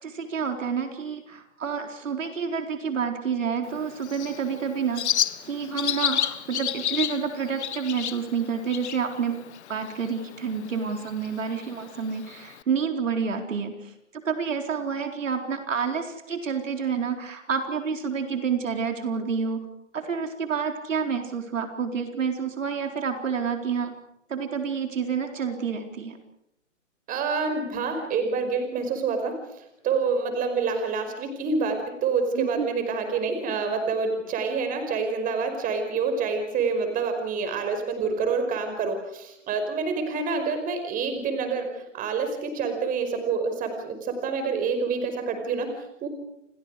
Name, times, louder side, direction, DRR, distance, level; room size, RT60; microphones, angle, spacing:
voice 1, 0.0-9.4 9.7-19.7 19.9-23.9 24.3-26.2 32.3-32.7, right 6 dB, 80° right, 5 dB, 4.1 m, -29 dB
Bird, 3.6-12.6, left 10 dB, 60° left, 1.2 m, -32 dB
voice 2, 27.1-46.1, right 4 dB, 20° right, 6 dB, 5.2 m, -27 dB
30.0 x 26.0 x 4.9 m, 0.80 s
hypercardioid pair, 135°, 38 cm